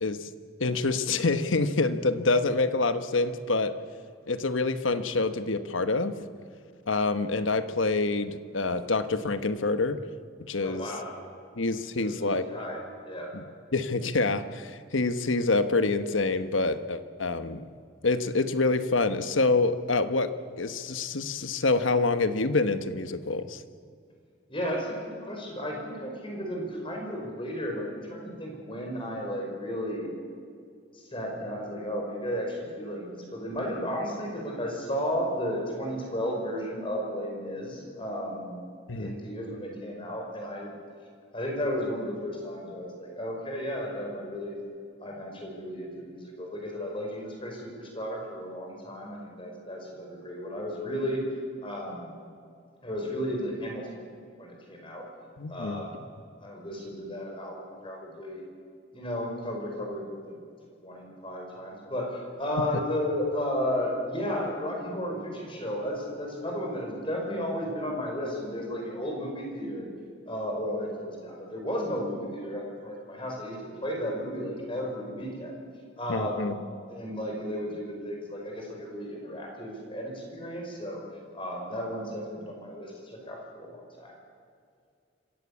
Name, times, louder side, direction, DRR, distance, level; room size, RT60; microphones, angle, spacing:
voice 1, 0.6-3.8 4.3-6.1 6.9-10.0 10.5-10.9 11.6-12.4 13.3-13.4 13.7-17.6 18.0-23.6 38.9-39.1 55.4-55.8 76.1-76.5, left 3 dB, 80° left, 11 dB, 1.1 m, -26 dB
voice 2, 10.6-11.1 12.0-13.3 24.5-30.1 30.9-38.6 39.0-40.7 41.3-44.6 45.0-51.2 51.6-52.1 52.8-54.0 54.4-55.1 55.5-56.0 56.4-58.4 58.9-60.4 60.8-69.9 70.3-75.5 76.0-76.5 76.9-81.0 81.3-84.1, equal, 25° left, 0 dB, 5.2 m, -34 dB
26.0 x 15.5 x 8.5 m, 2.3 s
head